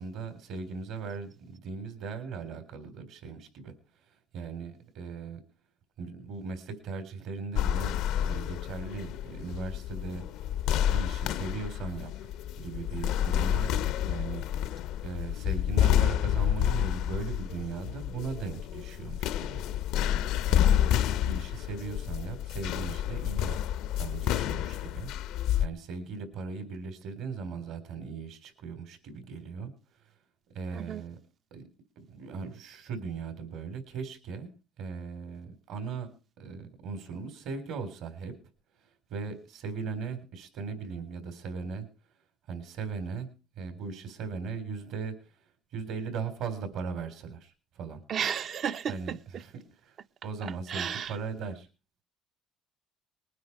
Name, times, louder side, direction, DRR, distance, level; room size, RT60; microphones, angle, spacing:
voice 1, 0.0-3.7 4.3-5.4 6.0-10.2 10.9-12.3 12.6-14.4 15.0-19.6 20.5-25.1 25.6-29.7 30.5-31.2 31.5-31.6 32.0-34.5 34.8-36.1 36.4-38.3 39.1-41.9 42.5-43.3 43.6-45.3 45.7-48.0 48.9-50.0 50.2-51.7, right 5 dB, 70° right, 3.9 m, -38 dB
sound 1, 7.6-25.7, left 11 dB, 75° left, 0.6 m, -29 dB
voice 2, 48.1-49.2 50.7-51.1, right 8 dB, 45° right, 0.6 m, -32 dB
21.0 x 9.4 x 4.8 m
cardioid pair, 115°, 0 cm